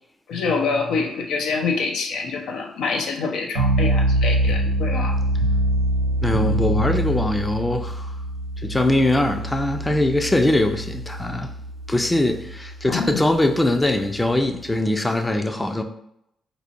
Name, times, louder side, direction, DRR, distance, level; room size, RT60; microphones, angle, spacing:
voice 1, 0.3-5.2 12.9-13.2, left 4 dB, 75° left, 0.4 m, -26 dB
sound 1, 3.5-14.7, right 1 dB, 90° right, 0.6 m, -24 dB
voice 2, 6.2-8.1 8.6-11.5 11.9-15.8, left 1 dB, 15° left, 0.4 m, -22 dB
4.1 x 2.7 x 2.6 m
supercardioid pair, 55°, 0 cm